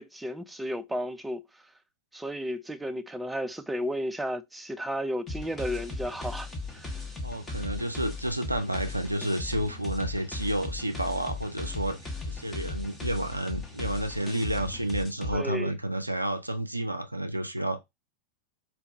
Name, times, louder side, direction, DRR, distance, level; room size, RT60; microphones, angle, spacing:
voice 1, 0.0-1.4 2.1-6.5 6.7-6.9 15.3-15.7, equal, 5° right, 0.3 m, -33 dB
sound 1, 5.3-15.4, left 3 dB, 15° left, 0.9 m, -37 dB
voice 2, 7.2-12.0 12.3-17.8, right 1 dB, 85° right, 0.3 m, -30 dB
4.4 x 2.2 x 2.6 m
figure-of-eight pair, 90°, 0 cm